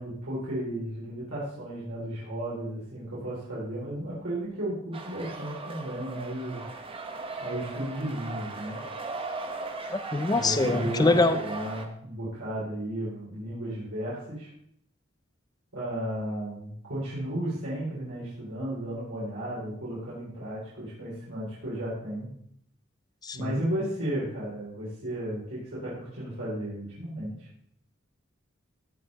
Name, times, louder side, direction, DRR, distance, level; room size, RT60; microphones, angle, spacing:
voice 1, 0.0-6.6 7.4-8.8 10.3-14.5 15.7-22.3 23.3-27.5, right 1 dB, 80° right, -9 dB, 4.0 m, -34 dB
sound 1, 4.9-11.9, right 3 dB, 25° right, 0.9 m, -38 dB
voice 2, 9.9-11.4 23.2-23.6, left 2 dB, 20° left, 11 dB, 0.5 m, -24 dB
16.5 x 5.5 x 4.0 m, 0.71 s
head